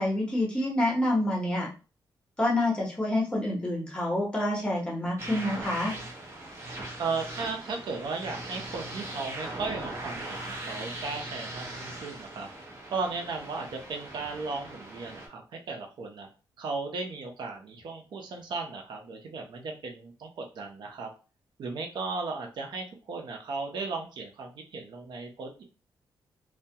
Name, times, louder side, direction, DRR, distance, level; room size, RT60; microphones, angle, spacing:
voice 1, 0.0-1.7 2.4-5.9, left 1 dB, 10° left, -2 dB, 1.0 m, -27 dB
sound 1, 5.2-15.3, right 1 dB, 35° right, 0.7 m, -40 dB
voice 2, 7.0-12.5 12.9-16.3 16.6-21.1 21.6-25.6, right 4 dB, 70° right, 3 dB, 0.7 m, -36 dB
2.2 x 2.1 x 2.7 m, 0.32 s
cardioid pair, 115°, 8 cm